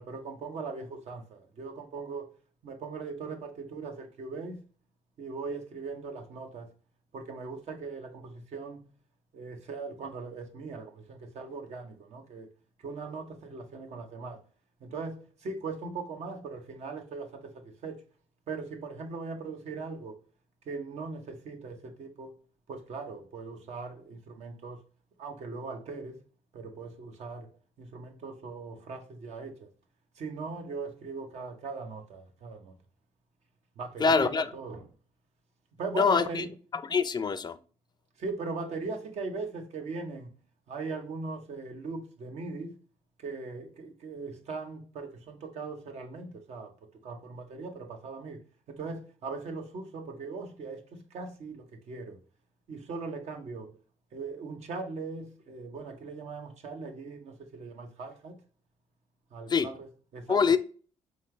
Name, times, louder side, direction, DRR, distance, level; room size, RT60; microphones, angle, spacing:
voice 1, 0.0-2.3 2.6-4.6 5.2-6.7 7.1-8.9 9.3-12.5 12.8-14.4 14.8-18.1 18.5-20.2 20.7-22.3 22.7-24.8 25.2-26.2 26.5-29.7 30.2-32.7 33.8-34.9 35.8-36.5 38.2-40.3 40.7-42.8 43.2-48.4 48.7-52.2 52.7-53.8 54.1-58.4 59.3-60.6, right 4 dB, 70° right, 0.9 m, -39 dB
voice 2, 34.0-34.5 36.0-36.4 36.9-37.6 59.5-59.7 60.3-60.6, left 5 dB, 35° left, 0.4 m, -24 dB
3.7 x 3.2 x 3.2 m
supercardioid pair, 70°, 12 cm